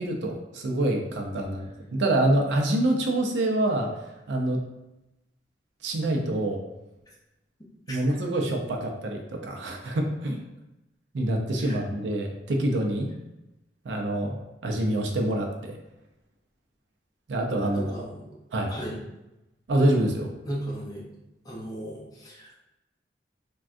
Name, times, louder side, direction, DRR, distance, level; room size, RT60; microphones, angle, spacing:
voice 1, 0.0-3.9 4.3-4.6 5.8-6.6 7.9-10.4 11.1-13.1 13.8-14.4 14.6-15.7 17.3-18.0 18.5-18.7 19.7-20.3, right 1 dB, 80° right, 1 dB, 0.5 m, -26 dB
voice 2, 17.7-18.2 18.7-19.0 20.4-21.1 21.4-22.6, equal, 20° left, -4 dB, 0.6 m, -36 dB
3.4 x 2.2 x 2.5 m, 0.95 s
head